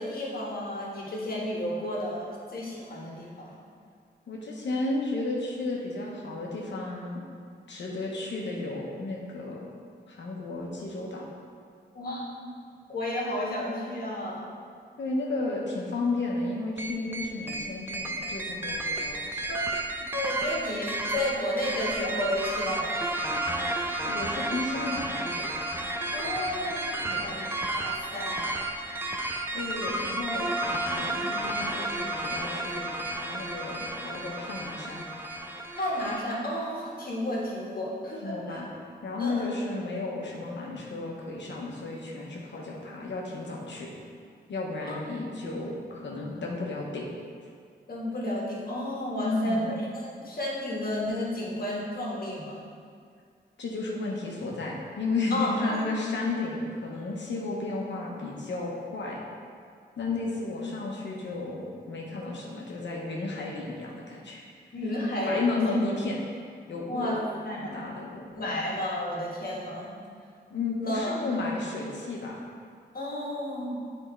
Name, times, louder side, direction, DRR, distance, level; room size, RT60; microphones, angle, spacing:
voice 1, 0.0-3.5 11.9-12.5 12.9-14.5 19.5-19.7 20.1-23.2 26.1-27.5 27.7-28.6 35.8-38.6 39.2-39.5 44.9-45.0 47.9-49.8 50.0-52.6 55.3-55.8 64.7-65.4 66.9-67.2 67.4-67.8 68.3-69.9 70.8-71.2 72.9-73.8, left 1 dB, 55° left, -4 dB, 1.5 m, -32 dB
voice 2, 4.3-7.2 7.7-9.7 10.1-11.3 15.0-19.6 24.0-25.5 27.1-27.4 29.5-32.9 33.2-35.1 38.2-38.7 39.0-43.9 44.5-47.1 49.2-49.7 53.6-59.2 60.0-64.4 65.3-66.2 66.7-67.2 67.6-68.3 70.5-72.4, left 3 dB, 90° left, -3 dB, 1.0 m, -33 dB
sound 1, 16.8-36.2, right 2 dB, 10° right, 0.5 m, -32 dB
8.0 x 3.6 x 4.4 m, 2.2 s
wide cardioid pair, 100°, 18 cm